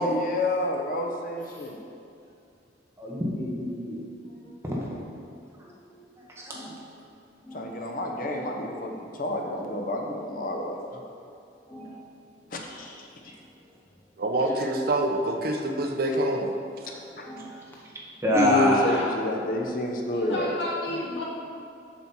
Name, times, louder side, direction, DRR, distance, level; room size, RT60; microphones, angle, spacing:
voice 1, 0.0-1.8 7.5-11.0 12.5-13.0 16.9-17.0 18.3-20.5, left 1 dB, 50° left, 1 dB, 0.8 m, -29 dB
voice 2, 3.0-4.0 4.6-4.8 6.4-6.6 18.2-19.1, left 1 dB, 15° right, -5 dB, 1.3 m, -25 dB
voice 3, 5.7-6.1 6.5-6.9 7.4-7.8 8.2-8.9 10.5-10.7 11.7-12.2 14.4-14.9 15.6-16.1 16.8-17.9 20.1-20.2 20.9-21.0, equal, 10° left, -3 dB, 0.5 m, -45 dB
voice 4, 14.2-16.5, right 1 dB, 55° right, 3 dB, 0.7 m, -26 dB
voice 5, 18.7-19.1 20.1-21.2, left 1 dB, 80° left, -5 dB, 1.8 m, -33 dB
7.3 x 6.0 x 4.3 m, 2.6 s
head